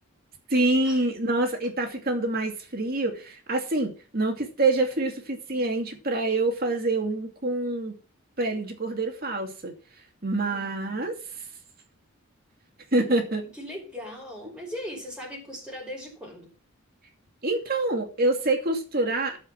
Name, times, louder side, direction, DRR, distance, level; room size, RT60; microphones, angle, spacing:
voice 1, 0.5-7.9 8.4-9.7 10.2-11.1 12.9-13.4 17.4-19.4, right 2 dB, 45° right, 2.5 m, -26 dB
voice 2, 10.5-11.1 13.4-16.5, left 1 dB, 5° right, 5.3 m, -39 dB
13.5 x 5.7 x 5.9 m
head